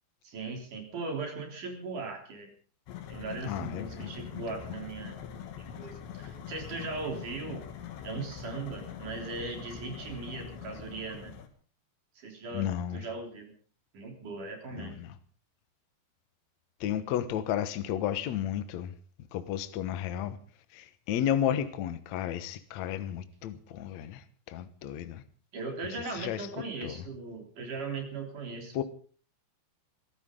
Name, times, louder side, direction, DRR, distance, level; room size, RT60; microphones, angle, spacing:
voice 1, 0.2-2.5 3.1-5.1 5.6-7.6 8.0-11.3 12.1-13.5 13.9-15.0 25.5-28.8, right 3 dB, 50° right, 5.0 m, -39 dB
sound 1, 2.9-11.5, left 8 dB, 85° left, 4.1 m, -43 dB
voice 2, 3.5-4.3 12.5-13.0 14.7-15.1 16.8-18.9 19.3-20.4 20.7-24.2 24.5-25.2 26.1-26.5 26.8-26.9 28.7-28.8, left 10 dB, 70° left, 1.7 m, -32 dB
25.0 x 14.5 x 3.8 m
omnidirectional pair, 5.0 m